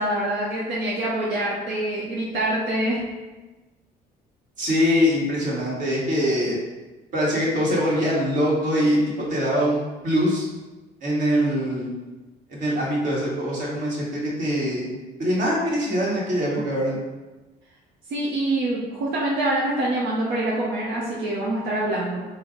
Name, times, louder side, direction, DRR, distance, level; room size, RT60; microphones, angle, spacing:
voice 1, 0.0-3.0 18.1-22.2, right 1 dB, 85° right, -5 dB, 0.7 m, -25 dB
voice 2, 4.6-6.6 7.1-10.5 11.0-11.9 12.5-14.9 15.2-17.0, equal, 50° right, -5 dB, 1.3 m, -23 dB
4.3 x 2.0 x 3.8 m, 1.2 s
cardioid pair, 110°, 17 cm